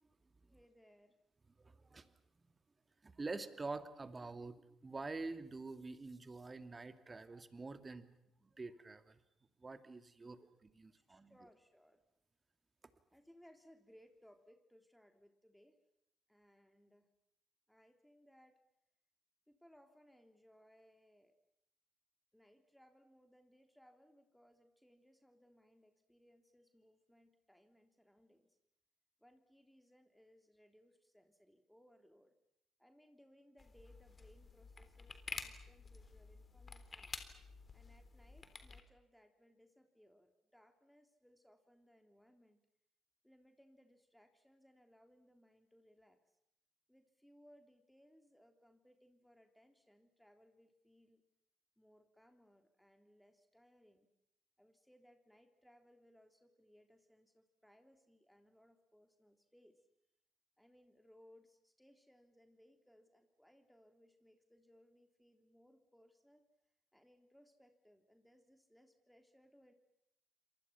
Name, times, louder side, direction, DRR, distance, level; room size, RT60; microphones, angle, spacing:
voice 1, 0.4-1.2 10.2-10.6 11.1-12.0 13.1-15.8 16.3-17.1 17.7-18.6 19.5-21.4 22.3-28.6 29.2-32.3 32.8-37.1 37.7-42.6 43.2-46.2 46.9-51.2 51.8-54.1 54.6-59.8 60.6-66.4 66.9-69.7, equal, 5° left, 5 dB, 3.5 m, -67 dB
voice 2, 1.6-2.1 3.0-8.2 8.4-9.2 9.6-11.4, right 3 dB, 30° right, 10 dB, 2.4 m, -47 dB
sound 1, 33.6-38.8, left 4 dB, 30° left, 3.5 m, -50 dB
29.0 x 27.0 x 5.9 m, 0.79 s
figure-of-eight pair, 45°, 0 cm